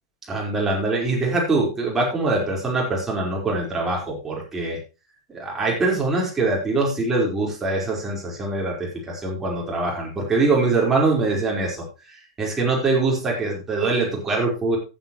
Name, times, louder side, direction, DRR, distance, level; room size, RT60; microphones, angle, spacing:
voice 1, 0.3-4.8 5.3-14.8, right 3 dB, 15° right, -2 dB, 5.0 m, -23 dB
14.5 x 8.2 x 3.2 m, 0.30 s
figure-of-eight pair, 95°, 2 cm